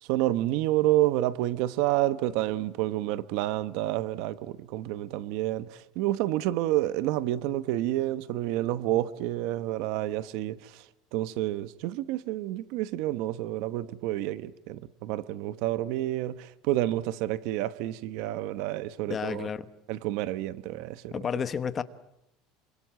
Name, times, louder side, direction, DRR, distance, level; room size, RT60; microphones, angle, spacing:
voice 1, 0.0-19.5 19.9-21.1, right 15 dB, 60° right, 1.0 m, -29 dB
voice 2, 19.1-19.7 21.1-21.8, left 7 dB, 20° left, 1.1 m, -31 dB
28.0 x 26.0 x 7.5 m
cardioid pair, 165°, 0 cm